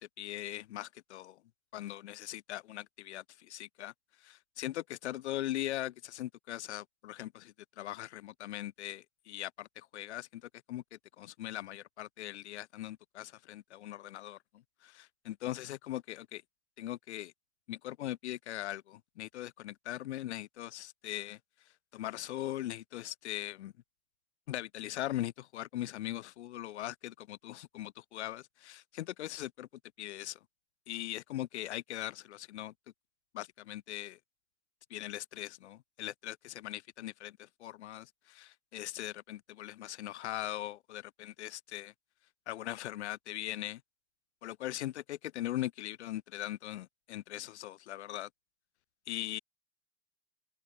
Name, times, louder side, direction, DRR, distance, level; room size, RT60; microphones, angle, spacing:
voice 1, 0.2-1.4 1.7-3.9 4.2-10.4 10.7-14.4 14.8-16.4 16.8-17.3 17.7-21.4 21.9-23.7 24.5-29.7 30.0-30.4 30.9-32.7 33.3-34.2 34.9-41.9 42.5-43.8 44.4-48.3 49.1-49.4, left 14 dB, 75° left, 4.7 m, -40 dB
open air
hypercardioid pair, 90°, 34 cm